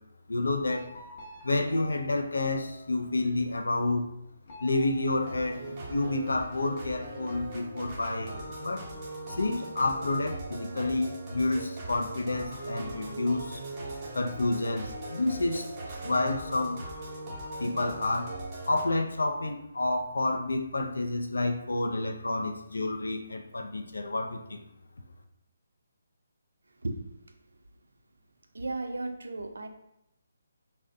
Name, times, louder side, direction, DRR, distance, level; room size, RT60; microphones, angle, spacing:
voice 1, 0.3-0.9 1.4-4.1 4.6-8.9 9.3-13.6 14.1-15.7 16.0-16.8 17.6-18.4 18.7-24.6, left 2 dB, 80° left, 4 dB, 0.3 m, -29 dB
sound 1, 0.7-3.4 4.4-6.2, left 2 dB, 45° left, 0.6 m, -49 dB
sound 2, 5.2-18.8, right 2 dB, 30° right, 0.6 m, -40 dB
voice 2, 28.5-29.7, right 2 dB, 80° right, 5 dB, 0.3 m, -34 dB
2.4 x 2.0 x 2.6 m, 0.80 s
figure-of-eight pair, 145°, 0 cm